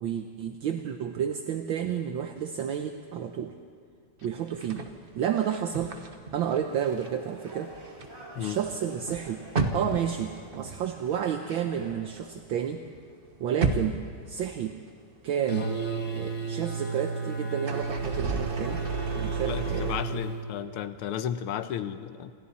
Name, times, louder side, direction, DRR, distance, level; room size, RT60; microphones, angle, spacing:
voice 1, 0.0-3.5 4.2-4.9 5.1-6.0 6.3-7.7 8.4-9.5 9.7-12.8 13.4-14.8 15.2-15.8 16.2-18.8 19.1-20.2, right 9 dB, 70° right, 5 dB, 1.6 m, -31 dB
sound 1, 4.4-7.1 7.4-12.6 12.8-14.9 15.3-15.4 17.5-20.0, right 3 dB, 35° right, 1.1 m, -34 dB
sound 2, 6.5-11.9, right 1 dB, 10° right, 5.3 m, -48 dB
sound 3, 15.5-20.4, right 4 dB, 50° left, 2.2 m, -32 dB
voice 2, 19.5-22.3, left 9 dB, 80° left, 10 dB, 1.8 m, -33 dB
28.0 x 27.5 x 4.2 m, 2.3 s
omnidirectional pair, 2.4 m